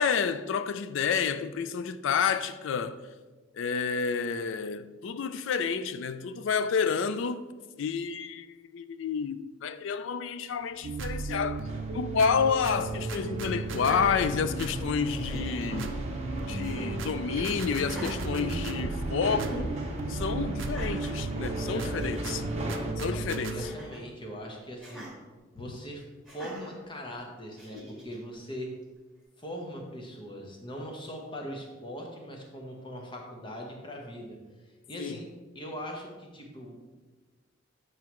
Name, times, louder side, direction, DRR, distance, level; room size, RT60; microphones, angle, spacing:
voice 1, 0.0-3.0 3.5-7.5 7.8-11.6 11.9-15.9 16.5-19.7 20.1-22.4 22.7-23.7 25.6-25.7 35.0-35.2, left 6 dB, 70° left, 0.3 m, -30 dB
sound 1, 10.7-22.9, right 1 dB, 35° right, 0.9 m, -38 dB
sound 2, 10.8-23.7, right 3 dB, 70° right, 0.5 m, -35 dB
Laughter, 13.7-14.8 15.1-15.8 16.6-17.1 17.8-19.0 19.4-19.7 20.6-21.2 21.7-21.8 22.0-22.3 23.5-24.1 24.8-25.1 26.2-26.7 27.6-28.2, right 1 dB, ahead, 1.8 m, -43 dB
voice 2, 21.6-22.2 23.1-25.1 25.5-26.0 26.3-28.7 29.4-34.4 34.9-35.3 35.5-36.8, equal, 25° left, 0.9 m, -40 dB
7.6 x 4.7 x 3.0 m
head